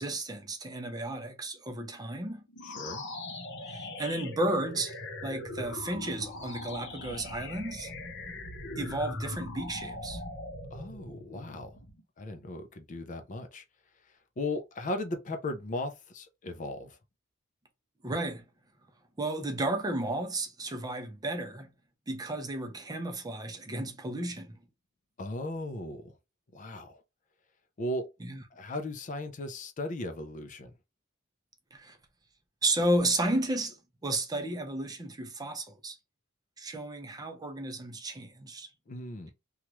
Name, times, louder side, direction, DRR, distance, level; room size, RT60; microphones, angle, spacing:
voice 1, 0.0-2.4 3.7-5.0 5.2-7.9 8.8-10.2 18.0-18.4 19.2-21.7 22.1-24.6 28.3-28.4 31.7-32.0 32.6-33.8 34.0-36.0 36.6-38.7, right 1 dB, 20° right, 0.5 m, -33 dB
sound 1, 2.5-12.0, left 2 dB, 55° left, 0.8 m, -41 dB
voice 2, 2.6-3.0 10.7-11.7 12.2-13.6 14.4-17.0 25.2-26.1 26.5-27.0 27.8-28.1 28.5-30.7 38.9-39.3, left 1 dB, 35° left, 0.4 m, -37 dB
3.0 x 2.3 x 2.9 m
head